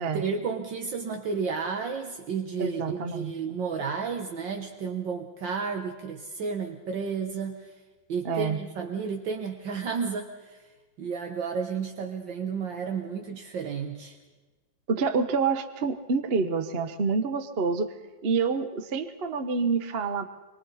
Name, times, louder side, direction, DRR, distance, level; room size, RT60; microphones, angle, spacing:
voice 1, 0.0-7.8 8.1-10.6 11.0-14.2, right 5 dB, 70° right, 4 dB, 1.9 m, -32 dB
voice 2, 2.6-3.3 8.2-8.6 14.9-17.9 18.2-20.3, right 5 dB, 40° right, 9 dB, 1.0 m, -27 dB
26.5 x 23.5 x 4.2 m, 1.3 s
omnidirectional pair, 2.1 m